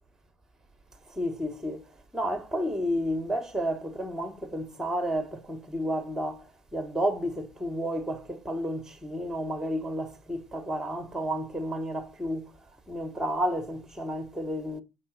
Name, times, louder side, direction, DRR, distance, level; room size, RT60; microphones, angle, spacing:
voice 1, 1.1-1.8 2.1-12.5 12.9-14.8, equal, ahead, 1.1 m, -31 dB
8.4 x 5.0 x 6.3 m
hypercardioid pair, 75°, 30 cm